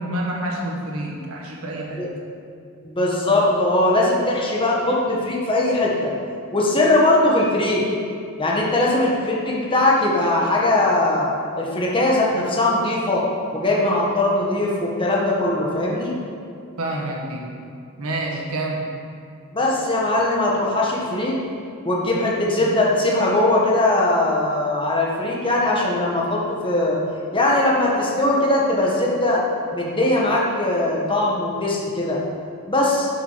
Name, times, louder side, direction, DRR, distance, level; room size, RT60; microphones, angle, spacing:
voice 1, 0.0-2.0 16.8-17.5 18.0-18.9, right 1 dB, 75° right, -1 dB, 1.5 m, -28 dB
voice 2, 2.8-6.1 6.5-7.9 8.4-11.3 11.6-13.2 13.5-16.1 19.5-21.3 21.8-27.0 27.3-29.4 29.7-32.2 32.7-33.1, left 2 dB, 25° left, -4 dB, 1.5 m, -20 dB
11.0 x 6.5 x 5.7 m, 2.4 s
head